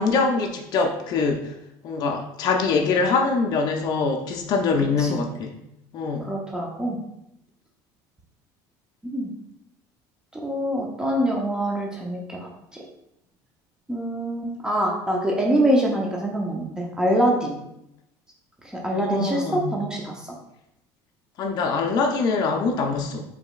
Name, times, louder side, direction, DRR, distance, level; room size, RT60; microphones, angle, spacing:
voice 1, 0.0-1.5 1.8-5.5 5.9-6.3 18.8-19.8 21.4-23.2, left 4 dB, 50° left, 2 dB, 0.5 m, -24 dB
voice 2, 6.2-7.0 9.1-9.3 10.3-12.5 13.9-17.6 18.6-20.3, right 1 dB, 10° right, -2 dB, 0.7 m, -24 dB
4.8 x 3.1 x 2.4 m, 0.83 s
cardioid pair, 125°, 9 cm